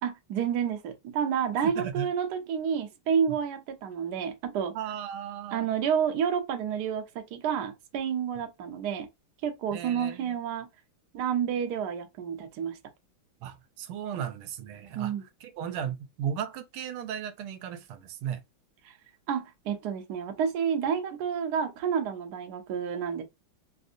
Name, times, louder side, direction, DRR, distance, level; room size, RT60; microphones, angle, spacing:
voice 1, 0.0-4.7 5.5-9.1 9.4-10.7 11.1-12.8 14.9-15.2 18.9-19.0 19.3-23.2, right 7 dB, 70° right, 1.0 m, -29 dB
voice 2, 1.6-2.1 4.7-5.7 9.7-10.4 13.4-18.4, right 9 dB, 90° right, 1.4 m, -36 dB
3.5 x 2.5 x 2.5 m
omnidirectional pair, 2.3 m